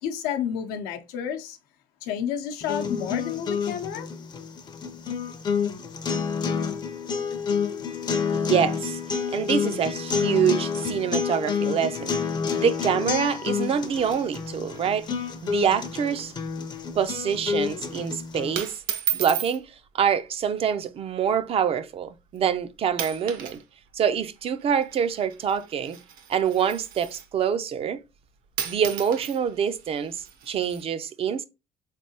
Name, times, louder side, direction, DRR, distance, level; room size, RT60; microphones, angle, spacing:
voice 1, 0.0-1.6 2.0-4.1, left 8 dB, 85° left, 0.6 m, -30 dB
sound 1, 2.6-18.6, left 6 dB, 30° left, 0.5 m, -29 dB
voice 2, 8.3-9.0 9.3-12.2 12.5-16.3 16.9-18.8 19.1-19.7 19.9-23.6 23.9-26.0 26.3-28.0 28.6-31.4, right 8 dB, 40° right, 0.4 m, -26 dB
sound 2, 13.5-14.8 15.1-15.2 15.5-15.7 16.1-16.4 16.8-17.1 17.8-18.1 18.5-19.6 20.6-20.9 21.5-21.6 22.4-22.6 22.9-23.6 23.9-27.4 28.2-28.3 28.5-30.8, right 10 dB, 70° right, 0.8 m, -35 dB
3.6 x 3.3 x 2.8 m
cardioid pair, 110°, 15 cm